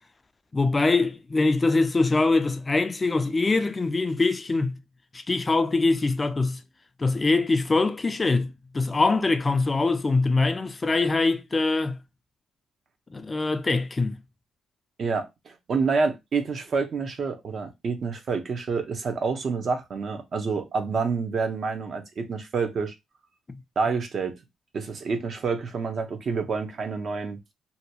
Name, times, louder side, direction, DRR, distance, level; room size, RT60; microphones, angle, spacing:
voice 1, 0.5-4.8 5.1-6.6 7.0-12.0 13.1-14.2, left 3 dB, 25° left, 0.4 m, -23 dB
voice 2, 15.0-22.9 23.8-24.3 24.7-27.4, right 4 dB, 50° right, 0.7 m, -28 dB
2.8 x 2.3 x 2.8 m
cardioid pair, 90°, 0 cm